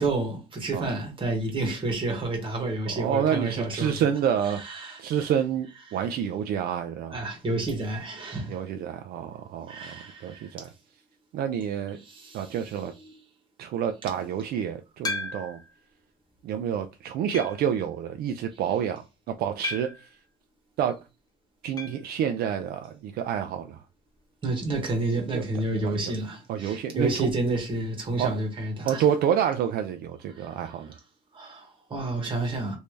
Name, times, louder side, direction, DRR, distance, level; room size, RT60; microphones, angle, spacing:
voice 1, 0.0-4.1 4.4-5.3 7.1-8.6 9.7-10.5 12.0-12.5 13.0-13.2 24.4-29.0 30.4-30.5 31.3-32.8, right 2 dB, 30° right, 1.5 m, -30 dB
voice 2, 3.0-4.6 5.0-7.2 8.5-10.7 11.3-12.0 12.3-12.9 13.6-15.6 16.4-20.1 20.8-21.0 21.6-23.8 25.3-25.4 25.7-26.0 26.5-27.3 28.2-28.3 28.9-31.0, right 9 dB, 65° right, 0.4 m, -28 dB
sound 1, 15.0-15.7 16.3-16.4 17.3-17.7 19.6-20.1 21.8-22.1 22.3-22.4 22.7-22.8 24.8-24.9, left 3 dB, 20° left, 0.6 m, -34 dB
3.3 x 2.7 x 3.1 m
cardioid pair, 110°, 17 cm